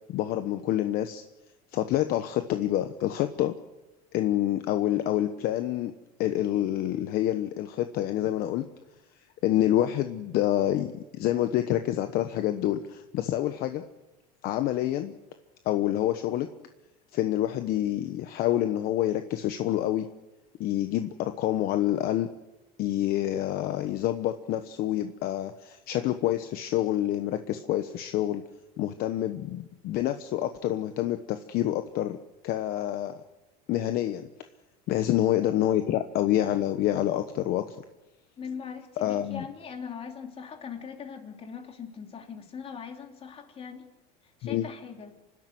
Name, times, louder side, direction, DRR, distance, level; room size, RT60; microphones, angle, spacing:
voice 1, 0.1-1.2 1.7-3.5 4.1-5.9 6.2-8.7 9.4-13.8 14.4-15.1 15.6-16.5 17.1-20.1 20.6-22.3 22.8-28.4 28.8-32.2 32.4-33.2 33.7-34.3 34.9-37.8 39.0-39.4 44.4-44.6, left 13 dB, 50° left, 9 dB, 1.1 m, -27 dB
voice 2, 38.4-43.9 44.2-45.1, left 6 dB, 30° left, 4 dB, 3.1 m, -40 dB
26.0 x 12.5 x 9.4 m, 1.0 s
supercardioid pair, 130°, 19 cm